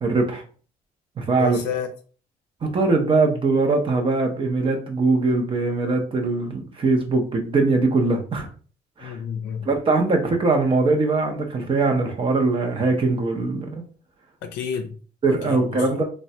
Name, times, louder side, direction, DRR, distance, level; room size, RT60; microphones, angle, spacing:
voice 1, 0.0-0.4 1.2-1.6 2.6-8.5 9.0-9.2 9.6-13.8 15.2-16.0, right 3 dB, 30° right, 0.5 m, -21 dB
voice 2, 1.4-1.9 9.0-9.7 14.4-14.9 15.3-16.0, left 7 dB, 85° left, 0.5 m, -30 dB
3.1 x 2.1 x 2.7 m
cardioid pair, 110°, 17 cm